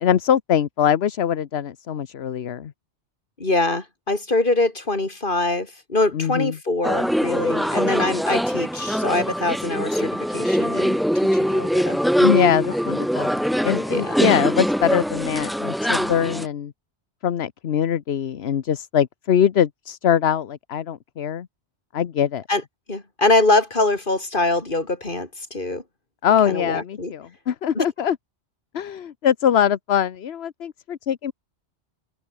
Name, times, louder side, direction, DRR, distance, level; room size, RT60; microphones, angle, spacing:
voice 1, 0.0-2.7 6.1-6.6 12.2-16.7 17.2-21.5 21.9-22.4 26.2-28.2 28.7-31.3, left 9 dB, 65° left, 1.1 m, -22 dB
voice 2, 3.4-11.0 11.3-12.0 13.9-14.1 22.5-22.6 22.9-25.8 26.5-27.1 27.8-27.9, left 2 dB, 45° left, 3.6 m, -23 dB
sound 1, 6.8-16.4, equal, ahead, 0.7 m, -22 dB
open air
omnidirectional pair, 1.2 m